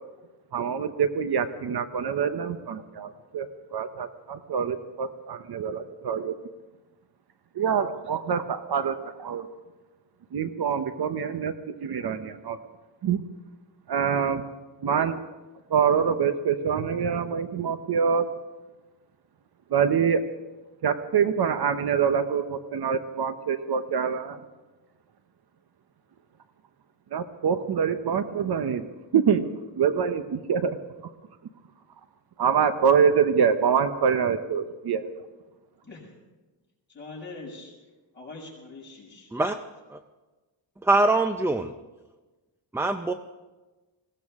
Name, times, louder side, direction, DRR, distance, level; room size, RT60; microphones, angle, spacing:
voice 1, 0.5-6.3 7.5-9.5 10.3-12.6 13.0-13.2 13.9-14.4 14.8-15.2 15.7-18.3 19.7-20.2 20.8-24.4 27.1-28.9 29.1-29.5 29.8-30.8 32.4-35.1, right 7 dB, 60° right, 10 dB, 0.9 m, -25 dB
voice 2, 36.9-37.7 38.1-39.3, left 3 dB, 25° left, -3 dB, 6.0 m, -42 dB
voice 3, 40.8-41.7 42.7-43.1, right 2 dB, 5° right, 8 dB, 0.4 m, -23 dB
21.0 x 16.5 x 3.6 m, 1.2 s
wide cardioid pair, 145°, 43 cm